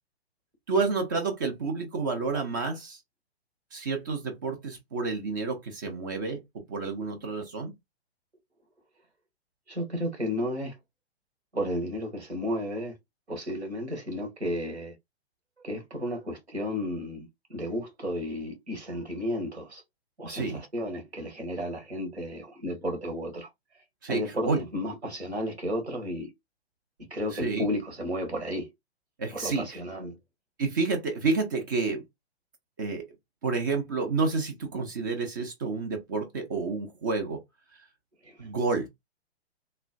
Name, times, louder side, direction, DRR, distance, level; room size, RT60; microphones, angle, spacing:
voice 1, 0.7-3.0 3.7-6.4 6.7-7.7 20.3-20.6 24.0-24.6 27.3-27.6 29.2-29.8 30.6-32.0 32.8-33.1 33.4-37.4 38.4-38.9, right 4 dB, 20° right, 0.4 m, -29 dB
voice 2, 9.7-10.7 11.5-12.9 13.3-14.9 15.6-19.8 20.2-23.5 24.1-26.3 27.1-28.7 29.3-30.1 38.2-38.5, equal, 85° right, 1.6 m, -33 dB
3.1 x 2.4 x 2.4 m
figure-of-eight pair, 120°, 33 cm